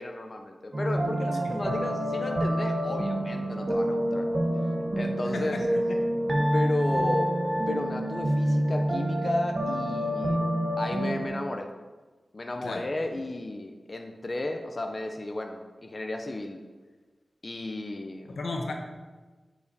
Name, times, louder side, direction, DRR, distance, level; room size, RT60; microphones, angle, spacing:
voice 1, 0.0-4.3 5.0-5.6 6.5-7.3 7.7-10.4 10.8-11.7 12.3-16.6 17.4-18.3, left 2 dB, 40° left, 4 dB, 0.5 m, -33 dB
sound 1, 0.7-11.3, equal, 50° right, 0.9 m, -27 dB
voice 2, 5.3-5.8 12.6-12.8 18.3-18.7, left 2 dB, 85° left, 2 dB, 0.8 m, -34 dB
9.3 x 4.9 x 2.8 m, 1.3 s
cardioid pair, 60°, 0 cm